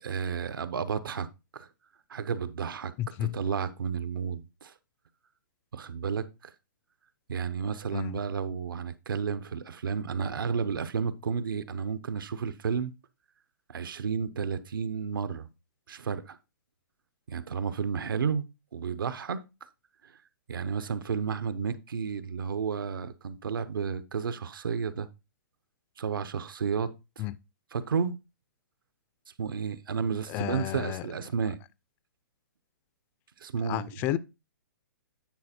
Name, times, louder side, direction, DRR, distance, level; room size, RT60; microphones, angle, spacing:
voice 1, 0.0-1.3 1.5-1.7 2.1-2.9 3.2-4.7 5.7-6.3 7.3-12.9 13.7-15.5 15.9-16.4 17.3-18.4 18.7-19.4 20.0-20.1 20.5-25.1 26.0-27.3 27.7-28.2 29.4-31.6 33.4-34.0, right 6 dB, 85° right, 0.9 m, -32 dB
voice 2, 3.0-3.3 7.9-8.2 27.2-27.4 30.3-31.0 33.6-34.2, left 14 dB, 20° left, 0.3 m, -32 dB
9.5 x 4.3 x 4.3 m
hypercardioid pair, 160°, 11 cm